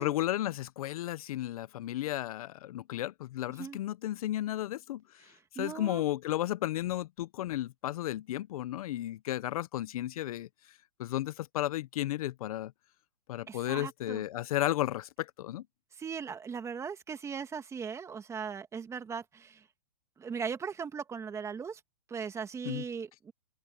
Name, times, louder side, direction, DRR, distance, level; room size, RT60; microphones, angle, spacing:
voice 1, 0.0-5.2 5.5-10.5 11.0-12.7 13.3-15.6 22.6-22.8, left 14 dB, 60° left, 0.8 m, -33 dB
voice 2, 5.6-6.0 13.5-14.2 16.0-19.6 20.2-21.8 22.1-23.3, right 6 dB, 15° right, 2.3 m, -38 dB
hypercardioid pair, 140°, 21 cm